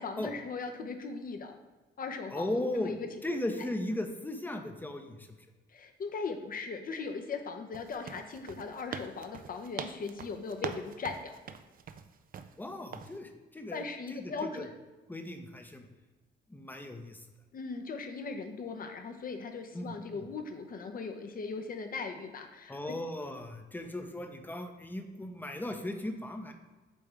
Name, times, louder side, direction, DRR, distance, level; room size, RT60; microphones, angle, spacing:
voice 1, 0.0-1.6 2.0-3.1 5.7-11.3 13.7-14.7 17.5-22.9, left 4 dB, 45° left, 6 dB, 0.8 m, -39 dB
voice 2, 2.3-2.9 3.2-5.4 12.6-13.8 14.1-14.6 15.1-15.8 16.5-17.2 19.7-20.2 22.7-26.5, left 1 dB, 10° left, 5 dB, 0.7 m, -37 dB
sound 1, 7.7-12.5 12.9-13.2, right 7 dB, 45° right, 0.4 m, -43 dB
8.4 x 3.5 x 3.3 m, 1.2 s
cardioid pair, 90°, 20 cm